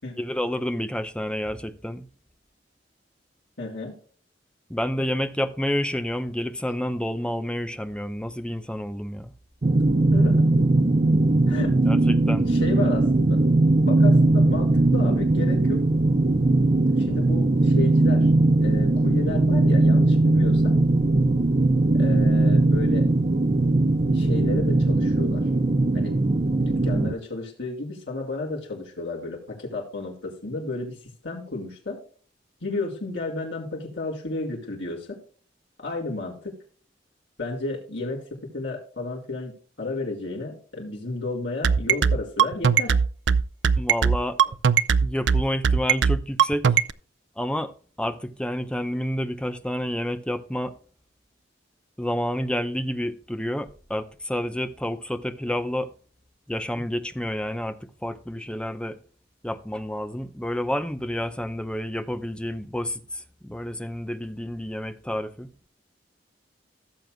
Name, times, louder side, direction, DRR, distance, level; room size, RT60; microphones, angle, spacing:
voice 1, 0.2-2.1 4.7-9.3 11.9-12.5 43.8-44.5 45.0-46.7 47.4-47.7 48.0-50.7 52.0-55.9 56.5-59.0 59.4-65.5, equal, 5° left, 0.7 m, -29 dB
voice 2, 3.6-3.9 10.1-10.5 11.5-11.7 12.4-13.4 13.8-15.8 17.0-18.3 18.6-20.8 21.9-23.1 24.1-25.5 25.9-26.2 26.5-31.0 31.2-32.0 32.6-35.2 35.8-36.6 37.4-43.0, left 2 dB, 85° left, 4.4 m, -32 dB
sound 1, 9.6-27.1, right 2 dB, 35° right, 0.6 m, -20 dB
sound 2, 41.6-46.9, right 7 dB, 80° right, 0.5 m, -19 dB
17.0 x 7.6 x 2.3 m
head